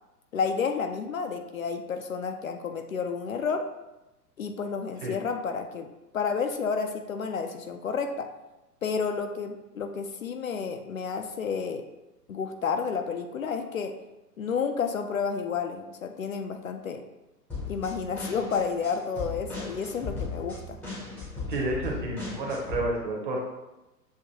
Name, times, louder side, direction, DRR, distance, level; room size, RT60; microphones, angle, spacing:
voice 1, 0.3-3.7 4.4-5.9 6.1-8.3 8.8-11.9 12.3-14.0 14.4-17.0 17.7-20.8, left 5 dB, 55° left, 6 dB, 0.5 m, -31 dB
sound 1, 17.5-22.8, left 3 dB, ahead, 0.6 m, -37 dB
voice 2, 21.5-23.4, right 2 dB, 30° right, -1 dB, 0.8 m, -30 dB
7.0 x 2.6 x 2.7 m, 0.99 s
figure-of-eight pair, 115°, 49 cm